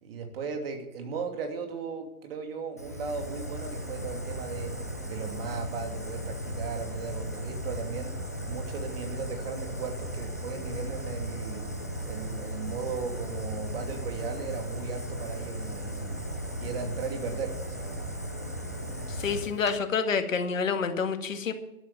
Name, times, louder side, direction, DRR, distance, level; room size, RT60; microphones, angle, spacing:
voice 1, 0.0-4.8 5.0-8.2 8.5-11.7 12.1-16.2 16.6-18.1, right 5 dB, 40° right, 4 dB, 2.8 m, -36 dB
Fire, 2.8-19.8, equal, 10° left, 0.4 m, -36 dB
voice 2, 19.1-21.5, left 5 dB, 60° left, 7 dB, 2.1 m, -28 dB
12.0 x 11.0 x 7.2 m, 0.91 s
figure-of-eight pair, 135°, 45 cm